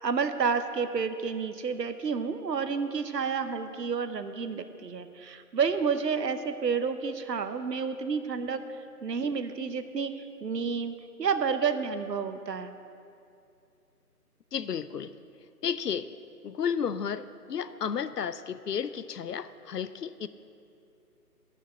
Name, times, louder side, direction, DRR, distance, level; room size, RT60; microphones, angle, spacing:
voice 1, 0.0-8.6 9.0-12.7, right 5 dB, 90° right, 10 dB, 1.0 m, -30 dB
voice 2, 14.5-15.1 15.6-16.1 16.4-20.3, left 7 dB, 75° left, 14 dB, 0.7 m, -32 dB
11.0 x 6.5 x 7.7 m, 2.5 s
figure-of-eight pair, 170°, 48 cm